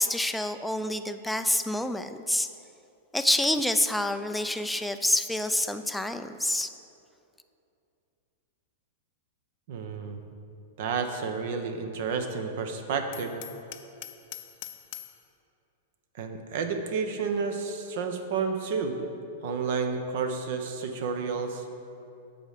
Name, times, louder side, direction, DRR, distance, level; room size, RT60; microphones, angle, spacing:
voice 1, 0.0-2.5 3.1-6.7, left 1 dB, 5° left, 8 dB, 0.4 m, -27 dB
voice 2, 9.7-10.2 10.8-13.3 16.1-19.0 19.4-21.6, right 5 dB, 60° right, 6 dB, 0.9 m, -31 dB
Hammer, 13.1-15.2, left 14 dB, 55° left, 0.5 m, -43 dB
8.0 x 4.3 x 6.6 m, 2.6 s
hypercardioid pair, 110°, 0 cm